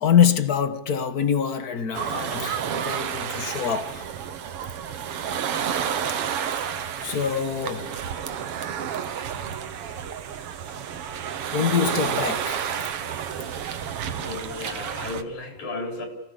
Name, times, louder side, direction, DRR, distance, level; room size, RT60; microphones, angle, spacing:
voice 1, 0.0-4.1 6.1-6.2 6.5-8.0 11.5-12.9, left 8 dB, 50° left, 1.2 m, -25 dB
sound 1, 1.9-15.2, right 8 dB, 60° right, 2.0 m, -30 dB
voice 2, 14.2-16.1, left 2 dB, 70° left, 6.2 m, -34 dB
27.5 x 18.0 x 8.4 m
omnidirectional pair, 3.5 m